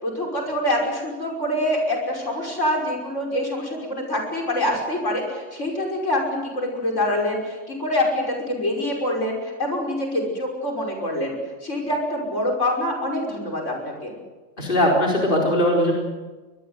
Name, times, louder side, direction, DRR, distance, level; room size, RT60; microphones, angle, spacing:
voice 1, 0.0-6.2 6.5-11.4 11.6-14.1, left 1 dB, 75° left, 0 dB, 6.2 m, -25 dB
voice 2, 14.6-15.9, equal, 45° left, -2 dB, 4.5 m, -19 dB
24.5 x 21.0 x 8.0 m, 1.2 s
omnidirectional pair, 1.3 m